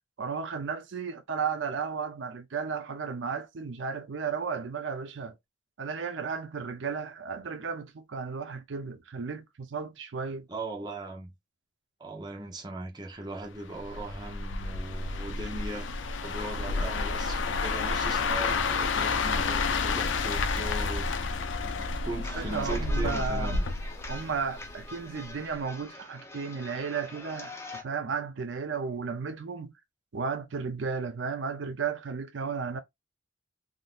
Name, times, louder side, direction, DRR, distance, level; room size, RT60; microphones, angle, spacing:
voice 1, 0.2-5.3 5.8-10.4 22.3-23.6 24.1-27.5 27.8-29.7 30.1-32.8, right 5 dB, 75° right, 0.5 m, -34 dB
voice 2, 10.5-11.3 12.0-15.9 16.2-21.2 21.6-23.7, right 2 dB, 25° right, 0.7 m, -39 dB
sound 1, 13.8-24.9 25.2-25.5, left 4 dB, 80° left, 0.5 m, -30 dB
sound 2, 22.2-27.8, left 2 dB, 15° left, 0.6 m, -43 dB
3.6 x 2.6 x 2.4 m
head